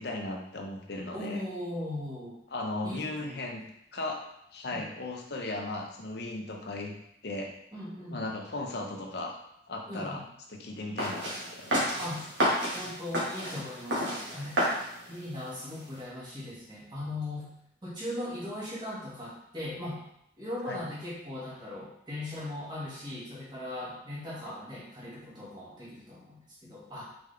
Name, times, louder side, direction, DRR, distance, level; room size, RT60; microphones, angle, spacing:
voice 1, 0.0-1.4 2.5-3.6 3.9-4.2 4.5-6.9 7.2-7.5 8.1-9.4 9.7-10.2 10.5-12.1 20.7-20.8, left 2 dB, 60° left, 2 dB, 0.7 m, -36 dB
voice 2, 1.1-2.3 2.8-3.5 4.7-4.9 7.7-8.2 9.9-10.2 12.0-12.3 12.7-14.6 15.1-17.5 17.8-20.0 20.4-27.0, left 1 dB, 25° right, -8 dB, 1.5 m, -39 dB
sound 1, 11.0-16.0, equal, 75° right, 1.5 m, -31 dB
3.9 x 3.8 x 3.3 m, 0.75 s
head